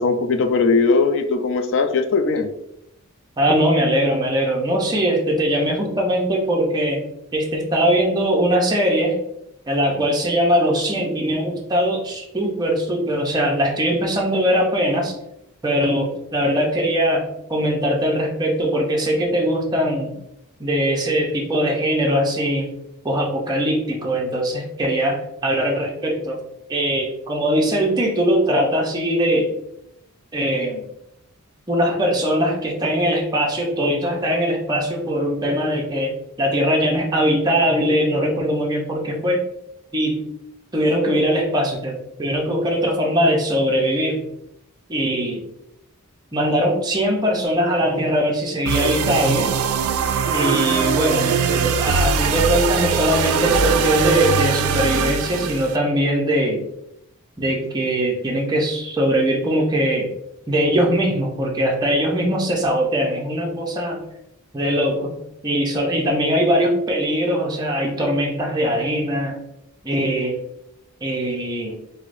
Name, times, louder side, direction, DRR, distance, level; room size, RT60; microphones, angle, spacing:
voice 1, 0.0-2.5, left 4 dB, 55° left, 7 dB, 0.4 m, -19 dB
voice 2, 3.4-7.0 7.3-9.2 9.7-15.1 15.6-20.1 20.6-22.7 23.0-26.4 26.7-29.5 30.3-30.8 31.7-36.1 36.4-39.4 39.9-40.2 40.7-44.2 44.9-45.5 46.3-49.5 50.3-56.6 57.4-60.1 60.5-64.0 64.5-65.1 65.4-69.4 69.8-70.4 71.0-71.8, equal, 20° right, 0 dB, 0.5 m, -21 dB
sound 1, 48.6-55.8, right 6 dB, 70° right, 0.3 m, -21 dB
4.7 x 2.0 x 2.5 m, 0.81 s
head